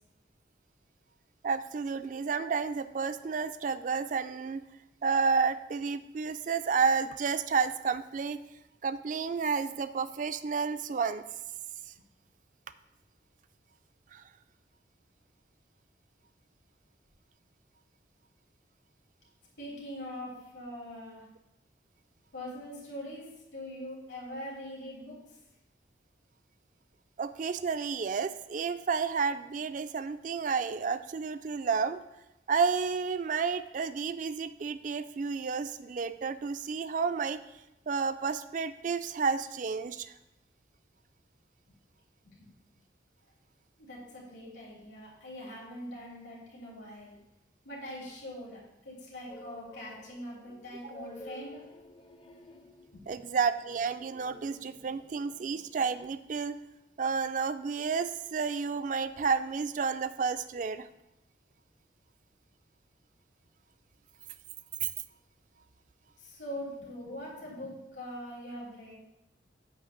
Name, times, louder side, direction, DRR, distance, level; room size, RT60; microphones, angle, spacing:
voice 1, 1.4-4.6 5.0-8.4 8.8-11.2 14.1-14.2 27.2-32.0 32.5-37.4 37.9-40.1 50.8-50.9 53.1-56.6 57.0-60.9 64.8-64.9, right 5 dB, 45° right, 12 dB, 0.3 m, -31 dB
voice 2, 19.6-21.2 22.3-23.3 23.5-25.4 42.2-42.5 43.8-47.2 47.6-48.6 48.8-51.6 52.9-53.0 66.2-69.0, equal, 85° left, -5 dB, 3.0 m, -42 dB
sound 1, 49.3-56.1, left 1 dB, 25° left, 0.5 m, -52 dB
8.5 x 3.3 x 6.5 m, 0.91 s
head